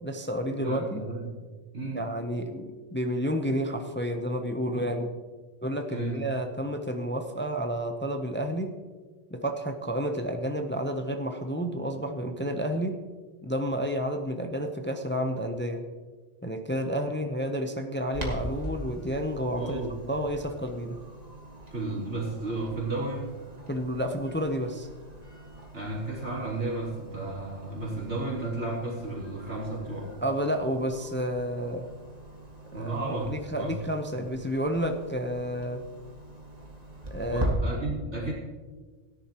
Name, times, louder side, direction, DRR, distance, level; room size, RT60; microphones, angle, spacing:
voice 1, 0.0-1.0 1.9-5.1 5.6-8.7 9.3-13.0 13.4-15.8 16.4-21.0 23.7-24.9 30.2-31.9 32.7-32.9 33.3-35.8 37.1-37.5, equal, 15° left, 5 dB, 0.6 m, -30 dB
voice 2, 0.6-1.4 1.7-2.1 5.9-6.2 19.5-20.0 21.7-23.3 25.7-30.1 32.7-33.8 37.3-38.3, right 2 dB, 80° right, -6 dB, 3.8 m, -33 dB
Clock, 18.1-37.5, right 1 dB, 35° right, 1.8 m, -42 dB
17.0 x 10.5 x 2.9 m, 1.4 s
omnidirectional pair, 1.2 m